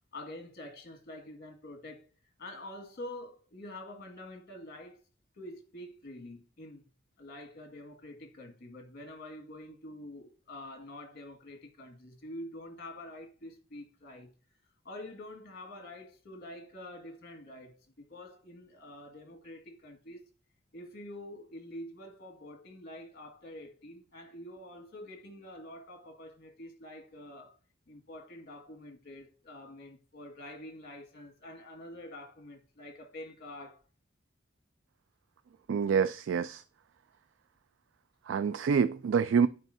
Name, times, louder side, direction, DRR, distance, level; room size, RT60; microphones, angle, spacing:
voice 1, 0.1-2.1 2.4-5.0 5.3-6.9 7.2-14.3 14.9-20.3 20.7-27.6 27.9-33.8, left 1 dB, 55° left, 1.8 m, -46 dB
voice 2, 35.7-36.6 38.3-39.5, right 6 dB, 75° right, 0.3 m, -27 dB
12.0 x 5.0 x 2.6 m
head